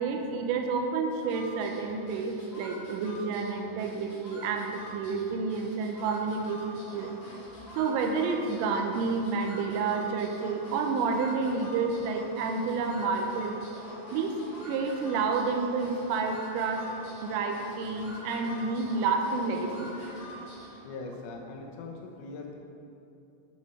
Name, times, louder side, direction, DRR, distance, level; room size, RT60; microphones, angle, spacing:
voice 1, 0.0-7.1 7.8-13.6 14.1-14.3 14.6-16.8 17.2-19.9, right 4 dB, 90° right, 3 dB, 3.3 m, -30 dB
sound 1, 1.2-20.9, equal, 50° left, 2.5 m, -45 dB
voice 2, 20.8-22.6, left 3 dB, 85° left, 2 dB, 3.4 m, -41 dB
8.6 x 6.4 x 4.2 m, 2.8 s
omnidirectional pair, 5.6 m